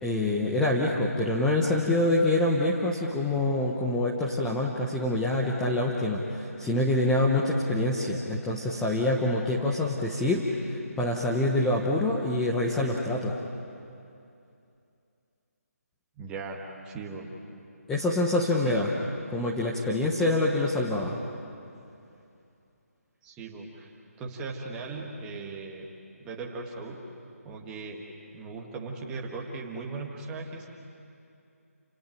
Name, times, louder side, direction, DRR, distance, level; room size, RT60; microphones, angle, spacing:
voice 1, 0.0-13.3 17.9-18.9 19.3-21.2, left 2 dB, 5° left, -3 dB, 1.1 m, -26 dB
voice 2, 16.2-17.3 18.6-18.9 23.2-23.9 24.2-25.9 26.2-27.0 27.4-28.0 28.3-30.7, right 3 dB, 10° right, 0 dB, 2.0 m, -38 dB
29.5 x 19.0 x 9.3 m, 2.6 s
figure-of-eight pair, 165°, 9 cm